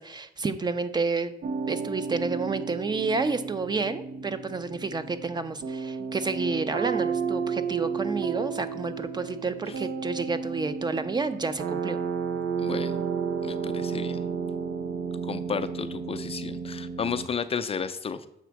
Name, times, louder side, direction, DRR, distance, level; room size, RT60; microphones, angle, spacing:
voice 1, 0.0-1.3 1.7-12.0, right 4 dB, 25° right, 11 dB, 0.5 m, -30 dB
sound 1, 1.4-17.3, right 5 dB, 70° right, 0.6 m, -32 dB
voice 2, 12.6-13.0 13.4-14.2 15.2-18.3, left 6 dB, 35° left, 11 dB, 0.4 m, -32 dB
7.1 x 5.0 x 4.5 m, 0.87 s
cardioid pair, 120°, 17 cm